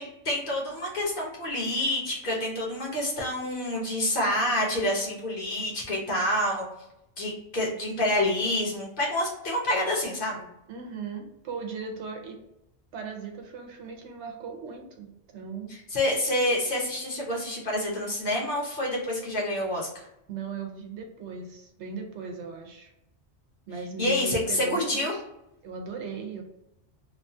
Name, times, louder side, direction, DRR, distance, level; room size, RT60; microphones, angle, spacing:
voice 1, 0.2-6.7 7.2-10.4 15.9-20.1 24.0-25.2, left 1 dB, 50° left, -2 dB, 0.9 m, -27 dB
voice 2, 10.7-12.4 12.9-15.7 20.3-22.9 23.7-25.2 25.6-26.4, right 4 dB, 75° right, 2 dB, 0.9 m, -38 dB
3.0 x 2.2 x 2.6 m, 0.85 s
omnidirectional pair, 1.2 m